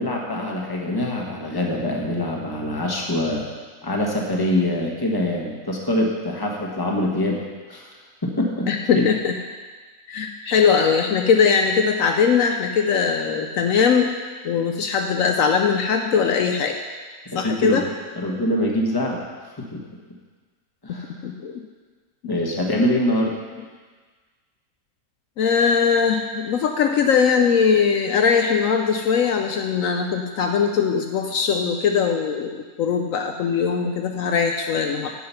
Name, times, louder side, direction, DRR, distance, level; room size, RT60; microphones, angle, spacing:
voice 1, 0.0-3.5 3.8-7.4 7.7-7.9 8.2-8.7 8.9-9.0 17.2-17.8 18.2-19.8 20.8-21.1 22.2-23.3, left 1 dB, 15° left, -1 dB, 1.2 m, -24 dB
voice 2, 8.7-9.3 10.1-14.1 14.4-16.8 17.3-17.9 20.9-21.0 21.2-21.6 22.2-22.3 25.4-35.1, left 6 dB, 70° left, 4 dB, 1.0 m, -20 dB
8.6 x 7.7 x 5.6 m, 1.4 s
omnidirectional pair, 1.5 m